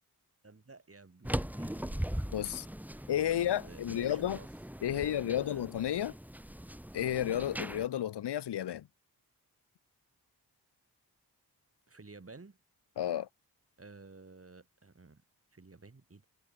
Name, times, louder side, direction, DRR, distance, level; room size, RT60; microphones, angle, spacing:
voice 1, 0.4-2.2 2.9-3.1 3.6-4.5 4.9-5.6 5.9-6.2 11.9-12.6 13.8-15.2 15.5-16.3, right 3 dB, 35° right, 5.1 m, -53 dB
sound 1, 1.2-7.9, equal, 5° right, 4.4 m, -40 dB
voice 2, 2.3-2.7 3.1-4.4 4.8-6.1 6.9-8.9 13.0-13.3, left 11 dB, 85° left, 1.3 m, -32 dB
cardioid pair, 55°, 40 cm